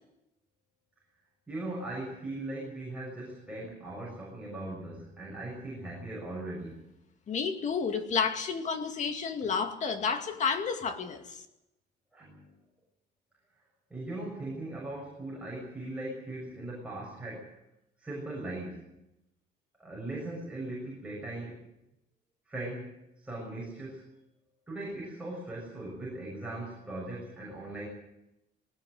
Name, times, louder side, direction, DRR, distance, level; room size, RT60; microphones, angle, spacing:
voice 1, 1.5-6.8 12.1-12.4 13.9-17.5 18.0-18.9 19.8-21.7 22.5-24.1 24.7-27.9, right 2 dB, 5° right, 6.7 m, -39 dB
voice 2, 7.3-11.4, left 6 dB, 40° left, 2.3 m, -31 dB
21.0 x 19.0 x 7.9 m
cardioid pair, 170°, 18 cm